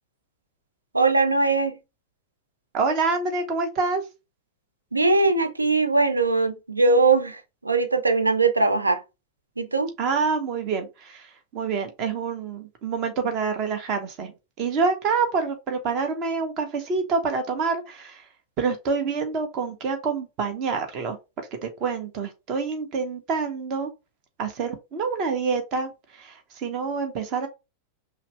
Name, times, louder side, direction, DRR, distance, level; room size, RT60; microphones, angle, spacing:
voice 1, 0.9-1.8 4.9-9.0 9.6-9.9, right 3 dB, 80° right, 0.6 m, -21 dB
voice 2, 2.7-4.0 10.0-14.3 14.6-18.2 18.6-21.2 21.6-23.9 24.4-27.5, right 5 dB, 40° right, 1.0 m, -27 dB
5.6 x 2.0 x 3.2 m
figure-of-eight pair, 90°, 0 cm